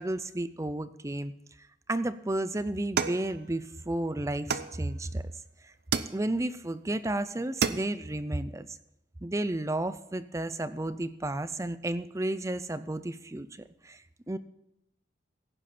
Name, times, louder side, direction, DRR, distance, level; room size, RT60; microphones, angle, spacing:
voice 1, 0.0-1.3 1.9-5.2 5.6-5.7 6.1-8.7 9.2-13.5 13.8-14.4, right 1 dB, 15° right, 13 dB, 0.5 m, -32 dB
sound 1, 3.0-3.9 4.5-5.2 5.9-6.6 7.1-7.2 7.4-8.2, right 6 dB, 55° right, 0.7 m, -32 dB
16.5 x 10.0 x 4.3 m, 0.84 s
head